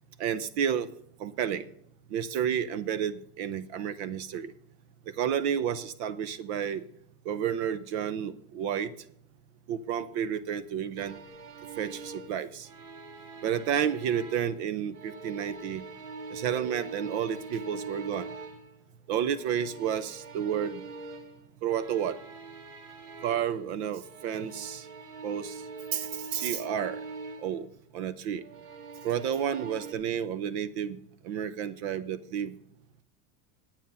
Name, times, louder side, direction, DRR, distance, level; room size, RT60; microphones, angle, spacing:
voice 1, 0.2-0.9 1.2-1.6 2.1-4.5 5.2-6.8 7.3-8.9 9.7-11.2 11.8-12.7 13.4-15.8 16.3-18.3 19.1-20.8 21.6-22.2 23.2-24.9 25.2-25.6 25.9-27.0 27.4-27.7 27.9-28.4 29.0-31.0 31.2-32.6, right 8 dB, 45° right, 15 dB, 0.6 m, -31 dB
sound 1, 11.0-14.6 14.9-18.8 19.3-23.7 24.0-27.6 28.4-29.9, right 4 dB, 85° right, 2.1 m, -43 dB
9.5 x 9.0 x 5.4 m, 0.68 s
supercardioid pair, 175°, 45 cm